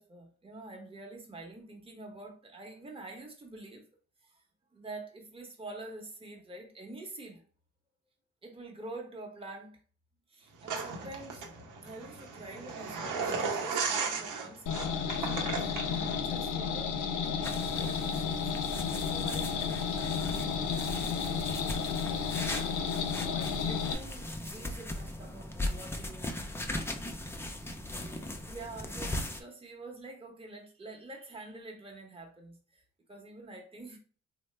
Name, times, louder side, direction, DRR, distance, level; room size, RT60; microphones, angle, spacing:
voice 1, 0.0-3.8 4.3-4.4 4.7-7.4 8.4-9.8 10.3-11.5 11.8-18.4 19.0-22.8 23.1-26.3 27.6-32.8 33.1-34.0, right 2 dB, 20° right, 0.9 m, -47 dB
sound 1, 10.7-16.2, right 5 dB, 85° right, 0.8 m, -35 dB
sound 2, 14.7-23.9, left 6 dB, 75° left, 0.6 m, -32 dB
sound 3, 17.4-29.4, left 1 dB, 10° left, 0.4 m, -39 dB
3.1 x 2.0 x 3.2 m
cardioid pair, 90°, 30 cm